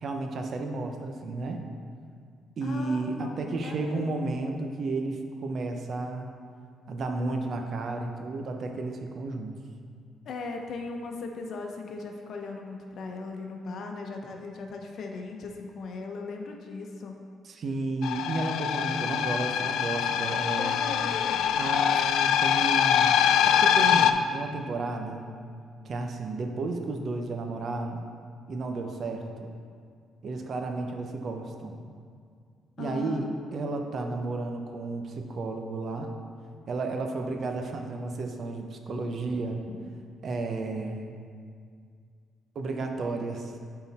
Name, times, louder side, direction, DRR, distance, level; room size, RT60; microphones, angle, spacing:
voice 1, 0.0-1.6 2.6-6.3 6.9-9.6 17.4-20.8 21.6-23.1 23.5-25.3 25.8-28.0 28.5-29.5 30.2-31.8 32.8-33.2 33.5-36.1 36.7-39.6 40.2-41.1 42.5-43.5, right 3 dB, 55° right, 4 dB, 0.7 m, -32 dB
voice 2, 2.6-3.4 3.6-4.2 10.2-17.2 20.6-21.6 32.8-33.3 39.7-39.8, left 3 dB, 65° left, 2 dB, 0.8 m, -38 dB
sound 1, 18.0-24.1, left 9 dB, 85° left, 0.3 m, -24 dB
8.8 x 3.9 x 4.2 m, 2.2 s
cardioid pair, 90°, 0 cm